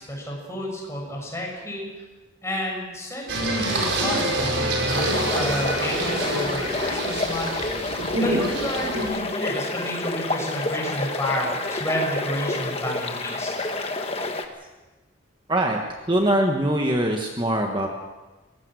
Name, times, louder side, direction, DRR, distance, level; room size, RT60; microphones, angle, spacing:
voice 1, 0.0-1.9 2.4-7.5 8.1-13.5, equal, 15° left, -2 dB, 6.6 m, -30 dB
Singing, 3.3-9.0, right 1 dB, 65° right, 5.3 m, -26 dB
sound 1, 4.9-14.4, left 2 dB, 30° left, 1.5 m, -29 dB
voice 2, 16.1-17.9, right 1 dB, 25° right, 1 dB, 1.4 m, -22 dB
23.0 x 19.0 x 6.4 m, 1.2 s
head